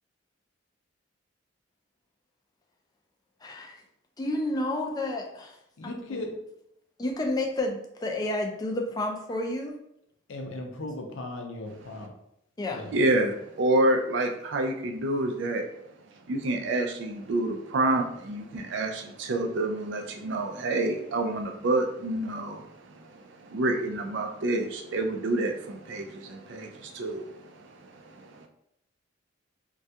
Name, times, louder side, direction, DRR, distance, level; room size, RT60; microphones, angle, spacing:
voice 1, 3.4-3.8 4.2-5.6 5.8-6.2 7.0-9.7 12.6-12.8, left 1 dB, 20° left, 1 dB, 0.3 m, -30 dB
voice 2, 5.8-6.3 10.3-12.1 12.7-12.9, left 2 dB, 80° left, 3 dB, 0.5 m, -37 dB
voice 3, 12.9-15.7 16.3-28.5, right 2 dB, 60° right, 4 dB, 0.4 m, -28 dB
2.3 x 2.2 x 2.7 m, 0.76 s
head